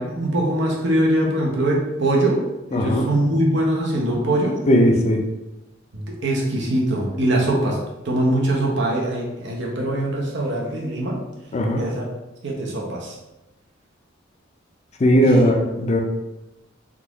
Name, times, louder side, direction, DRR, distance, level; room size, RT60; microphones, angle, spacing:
voice 1, 0.0-2.4 2.7-4.6 5.9-7.8 8.0-11.2 11.8-12.0 12.4-13.2 15.2-15.5, right 1 dB, 65° right, -2 dB, 0.8 m, -22 dB
voice 2, 2.7-3.1 4.7-5.2 11.5-11.8 15.0-16.0, equal, 35° left, 3 dB, 0.4 m, -17 dB
3.7 x 2.4 x 3.0 m, 0.98 s
head